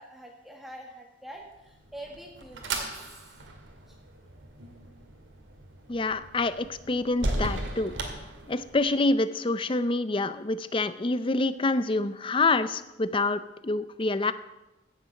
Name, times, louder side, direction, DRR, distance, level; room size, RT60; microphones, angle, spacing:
voice 1, 0.0-2.9 3.9-4.0, right 1 dB, ahead, 0 dB, 1.5 m, -45 dB
sound 1, 1.6-9.0, right 2 dB, 85° right, 2.1 m, -37 dB
voice 2, 5.9-7.9 8.5-14.3, left 2 dB, 25° left, 13 dB, 0.5 m, -27 dB
16.5 x 7.1 x 6.5 m, 1.0 s
head